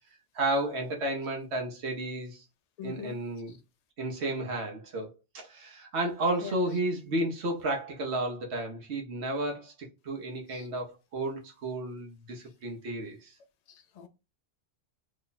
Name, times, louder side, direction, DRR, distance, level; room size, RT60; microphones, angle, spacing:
voice 1, 0.3-2.4 2.8-3.5 4.0-13.3, right 1 dB, 70° right, 1.1 m, -32 dB
voice 2, 2.8-3.2 3.5-3.6 6.4-6.6 10.5-10.7 13.7-14.1, left 8 dB, 50° left, 0.5 m, -42 dB
3.0 x 2.2 x 3.9 m
omnidirectional pair, 1.2 m